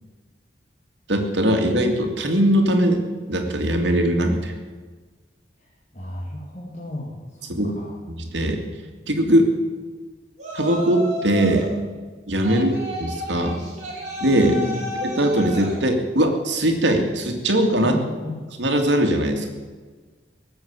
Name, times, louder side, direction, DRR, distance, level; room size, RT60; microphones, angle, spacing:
voice 1, 1.1-3.0 3.3-4.5 7.5-7.7 8.1-8.6 9.1-9.5 10.5-11.7 12.3-12.7 13.0-13.6 14.2-14.6 15.0-18.0 18.6-19.5, right 1 dB, 75° right, 3 dB, 2.3 m, -20 dB
voice 2, 5.6-8.0 12.4-12.7 14.5-14.8 17.8-18.4, left 1 dB, 40° left, -3 dB, 2.2 m, -33 dB
Yell, 10.4-11.7 12.4-15.8, equal, 40° right, 4.6 m, -32 dB
18.0 x 7.6 x 8.8 m, 1.4 s
head